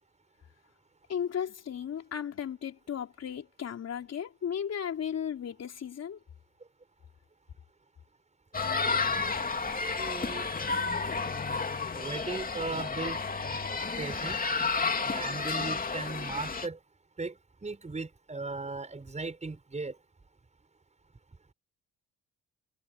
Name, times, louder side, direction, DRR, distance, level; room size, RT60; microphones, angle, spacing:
voice 1, 1.1-6.2, left 8 dB, 55° left, 3.7 m, -35 dB
sound 1, 8.5-16.7, left 4 dB, 30° left, 2.7 m, -31 dB
voice 2, 10.0-10.5 11.9-13.2 14.0-14.5 15.0-16.8 17.2-20.0, right 3 dB, 25° right, 6.4 m, -37 dB
cardioid pair, 90°, 30 cm